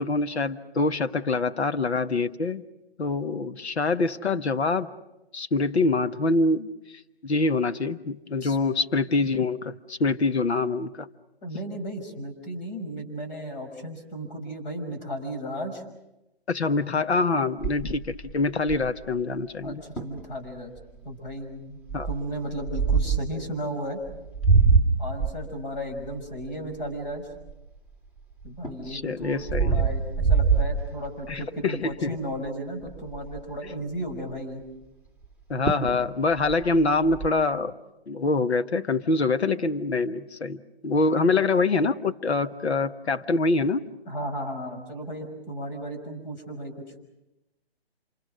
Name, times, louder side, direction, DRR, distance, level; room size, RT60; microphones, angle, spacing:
voice 1, 0.0-2.6 3.0-4.9 5.3-6.7 7.2-11.1 16.5-19.8 21.9-22.1 28.9-29.8 31.3-32.2 35.5-37.7 38.1-43.8, left 3 dB, 85° left, 10 dB, 1.4 m, -25 dB
voice 2, 11.4-15.8 19.6-20.8 21.0-21.8 22.1-24.0 25.0-27.3 28.4-34.6 41.0-41.3 44.1-46.7, equal, 45° left, 3 dB, 6.1 m, -35 dB
sound 1, 17.6-19.1 19.6-19.7 20.0-20.2 20.8-21.1 21.9-23.4 24.0-27.9 28.4-31.4 31.9-32.2 32.5-32.6 32.8-33.6 35.2-35.3 35.7-36.0 36.3-37.3, right 5 dB, 10° left, 2.7 m, -25 dB
27.5 x 25.5 x 6.3 m, 0.95 s
hypercardioid pair, 165°, 32 cm